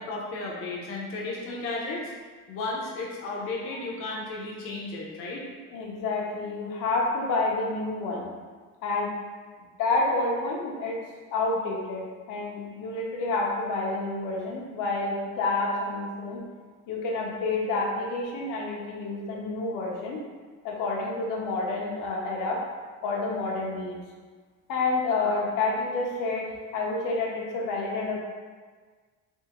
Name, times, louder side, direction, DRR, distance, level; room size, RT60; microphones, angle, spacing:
voice 1, 0.0-2.1 2.5-5.5, left 2 dB, 45° left, -4 dB, 0.6 m, -34 dB
voice 2, 5.7-8.3 8.8-9.1 9.8-11.0 11.3-16.4 16.9-20.2 20.6-22.6 23.0-24.0 24.7-26.5 26.7-28.2, left 3 dB, 80° left, -2 dB, 0.8 m, -29 dB
3.5 x 2.8 x 2.9 m, 1.5 s
cardioid pair, 175°, 32 cm